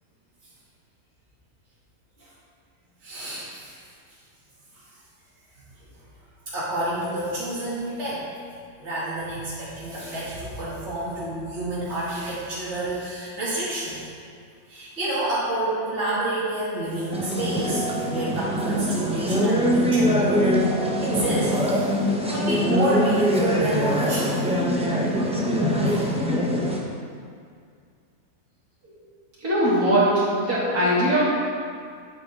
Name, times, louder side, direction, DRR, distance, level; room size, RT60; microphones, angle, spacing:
voice 1, 3.0-3.8 6.5-8.3 8.8-14.1 14.7-20.6 21.0-21.9 22.3-24.5 25.8-26.0, right 1 dB, 50° right, -10 dB, 2.7 m, -29 dB
sound 1, 17.1-26.8, equal, 5° right, 0.7 m, -23 dB
voice 2, 29.4-31.2, right 1 dB, 80° right, -10 dB, 3.1 m, -20 dB
8.9 x 8.0 x 3.7 m, 2.2 s
omnidirectional pair, 1.6 m